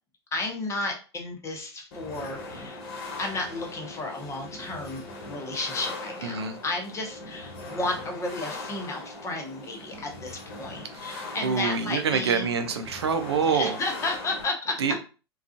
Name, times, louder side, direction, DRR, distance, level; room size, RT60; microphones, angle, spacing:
voice 1, 0.3-2.8 3.2-12.5 13.5-14.7, left 2 dB, 20° left, 0.8 m, -33 dB
sound 1, 1.9-14.4, left 3 dB, 55° left, 1.0 m, -40 dB
voice 2, 6.2-6.6 10.9-13.8 14.8-15.0, right 5 dB, 80° right, 0.4 m, -26 dB
2.4 x 2.3 x 2.5 m
hypercardioid pair, 95°, 14 cm